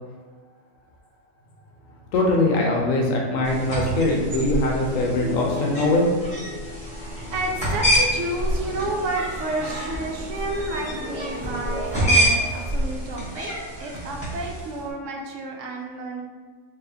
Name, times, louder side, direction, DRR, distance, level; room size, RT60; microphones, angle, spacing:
sound 1, 1.3-9.1 9.4-14.5, equal, 50° left, 0.6 m, -39 dB
voice 1, 2.1-6.1, left 2 dB, 75° left, 0 dB, 1.0 m, -22 dB
sound 2, 3.4-14.8, equal, 5° left, 1.2 m, -27 dB
voice 2, 6.9-13.5 13.8-16.2, right 2 dB, 70° right, 0 dB, 0.9 m, -31 dB
sound 3, 7.2-12.3, equal, 35° right, 1.2 m, -39 dB
4.2 x 2.7 x 2.7 m, 1.5 s
omnidirectional pair, 1.4 m